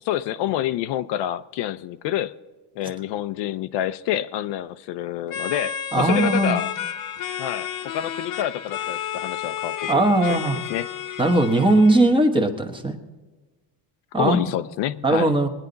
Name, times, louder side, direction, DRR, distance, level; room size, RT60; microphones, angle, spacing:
voice 1, 0.0-2.3 2.7-6.7 7.4-10.9 14.2-15.4, left 12 dB, 75° left, 0.7 m, -28 dB
sound 1, 5.3-12.1, left 9 dB, 50° left, 0.9 m, -31 dB
voice 2, 5.9-6.6 9.9-10.6 11.2-12.9 14.1-14.4 15.0-15.5, right 2 dB, 10° right, 1.1 m, -19 dB
22.0 x 9.9 x 4.0 m
cardioid pair, 160°, 42 cm